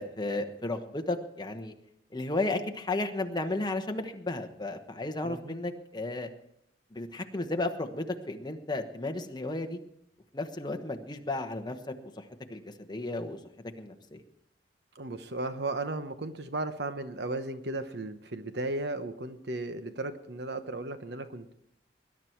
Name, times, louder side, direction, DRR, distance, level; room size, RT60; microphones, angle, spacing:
voice 1, 0.0-1.7 2.1-6.3 6.9-9.8 10.3-11.8 12.2-12.3 12.5-12.6 12.9-13.4 13.8-14.2, left 2 dB, 25° left, 5 dB, 1.2 m, -33 dB
voice 2, 5.2-5.5 14.9-21.5, right 2 dB, 70° right, 10 dB, 1.0 m, -35 dB
20.5 x 11.0 x 4.6 m, 0.76 s
head